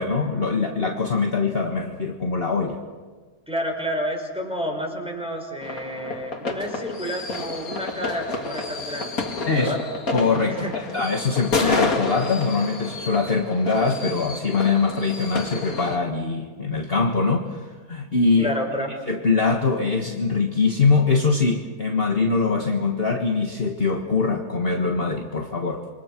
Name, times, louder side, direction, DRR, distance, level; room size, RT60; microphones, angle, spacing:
voice 1, 0.0-2.8 9.4-9.7 10.1-10.7 10.9-18.5 19.1-25.8, left 4 dB, 40° left, 2 dB, 1.7 m, -23 dB
voice 2, 3.5-9.2 9.6-9.8 10.5-10.8 11.3-11.4 18.4-18.9, equal, 5° right, 1 dB, 4.8 m, -30 dB
sound 1, 5.6-16.0, left 3 dB, 60° left, 2.6 m, -30 dB
27.5 x 24.5 x 6.1 m, 1.5 s
omnidirectional pair, 1.7 m